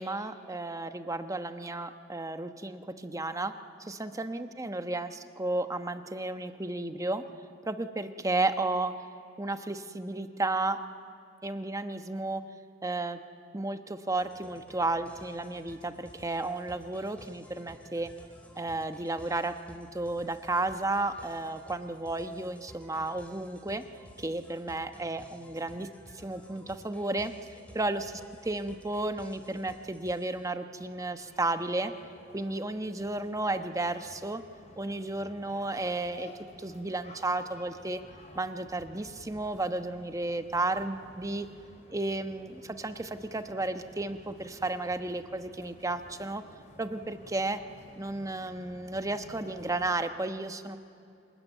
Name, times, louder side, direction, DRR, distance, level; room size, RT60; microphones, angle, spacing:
voice 1, 0.0-3.5 3.8-7.2 7.6-8.9 9.4-10.8 11.4-12.4 12.8-13.2 13.5-18.1 18.6-23.8 24.2-25.9 26.1-27.3 27.7-28.2 28.5-31.9 32.3-34.4 34.8-36.3 36.6-38.0 38.3-41.5 41.9-46.4 46.8-47.6 48.0-50.8, right 2 dB, 15° right, 8 dB, 1.1 m, -33 dB
sound 1, 14.2-30.5, equal, 5° left, 2.8 m, -54 dB
sound 2, 30.8-50.0, left 1 dB, 40° left, 4.0 m, -54 dB
25.5 x 20.5 x 9.4 m, 2.6 s
head